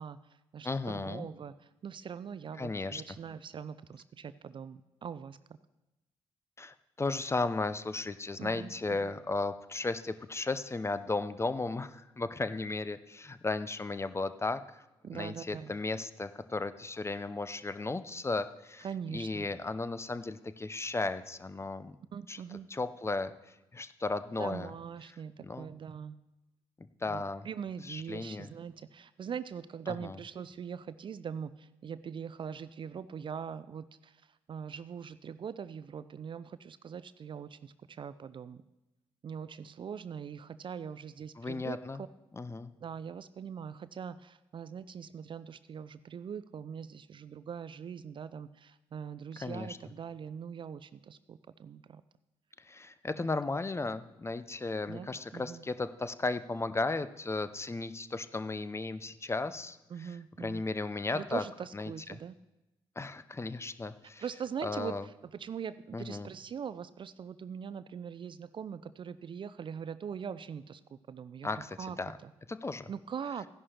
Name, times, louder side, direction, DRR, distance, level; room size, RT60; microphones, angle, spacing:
voice 1, 0.0-5.6 8.4-9.1 15.0-15.7 18.8-19.5 22.1-22.7 24.4-26.2 27.0-38.6 39.2-42.1 42.8-52.0 53.2-53.3 54.9-55.6 59.9-60.7 61.1-62.3 64.2-72.3 72.9-73.5, right 7 dB, 40° right, 15 dB, 0.4 m, -42 dB
voice 2, 0.6-1.3 2.6-3.0 6.6-14.8 15.1-18.9 19.1-22.0 22.3-22.4 22.7-23.3 23.7-24.7 25.4-25.7 27.0-27.5 27.8-28.5 29.9-30.1 41.4-42.0 42.3-42.7 49.4-49.8 52.7-60.1 60.4-61.4 61.7-62.2 63.0-64.2 64.6-65.0 65.9-66.3 71.4-72.2 72.5-72.9, left 3 dB, 20° left, 13 dB, 0.6 m, -35 dB
15.0 x 11.0 x 2.9 m, 0.98 s
figure-of-eight pair, 40°, 13 cm